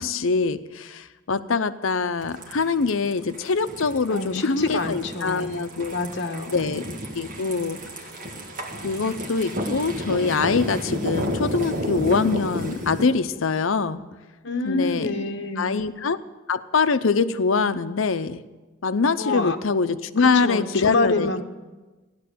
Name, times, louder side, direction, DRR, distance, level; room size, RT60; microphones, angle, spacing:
voice 1, 0.0-5.9 6.5-6.9 7.1-7.8 8.8-14.0 14.7-15.1 15.6-16.2 16.5-18.4 18.8-21.3, left 4 dB, 75° left, 12 dB, 0.7 m, -24 dB
sound 1, 2.2-13.0, equal, 40° right, 1.7 m, -32 dB
voice 2, 4.1-5.6 5.9-6.7 14.4-15.9 19.2-19.6 20.2-21.4, left 2 dB, 60° left, 4 dB, 1.2 m, -27 dB
16.0 x 11.0 x 6.9 m, 1.2 s
head